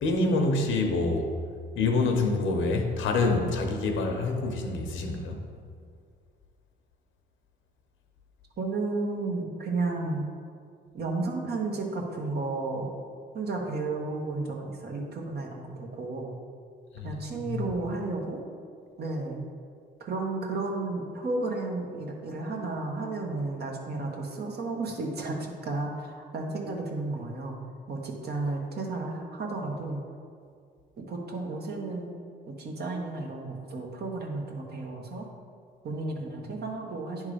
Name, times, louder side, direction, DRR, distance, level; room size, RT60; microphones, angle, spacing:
voice 1, 0.0-1.3 1.8-5.4 16.9-17.6, left 3 dB, 85° left, 3 dB, 1.0 m, -26 dB
voice 2, 8.6-10.2 10.9-12.9 13.3-16.3 17.0-18.4 19.0-19.4 20.0-27.6 27.9-30.0 31.0-32.1 32.5-35.3 35.8-37.3, right 3 dB, 55° right, 0 dB, 1.4 m, -33 dB
9.9 x 3.6 x 5.1 m, 2.2 s
cardioid pair, 90°, 20 cm